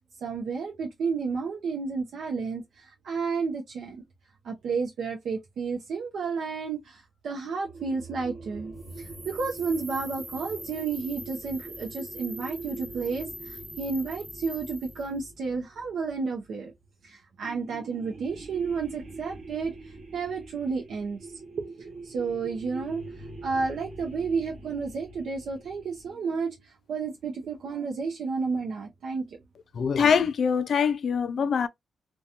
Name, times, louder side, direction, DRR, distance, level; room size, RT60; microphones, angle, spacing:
voice 1, 0.2-4.0 4.4-16.7 17.0-21.3 21.8-29.4, right 4 dB, 75° right, 0.5 m, -32 dB
sound 1, 7.6-16.7 17.4-26.1, right 3 dB, 50° right, 1.0 m, -44 dB
sound 2, 8.8-15.1, equal, 15° right, 1.1 m, -43 dB
voice 2, 29.7-31.7, left 6 dB, 65° left, 0.3 m, -23 dB
2.8 x 2.2 x 2.4 m
cardioid pair, 100°, 0 cm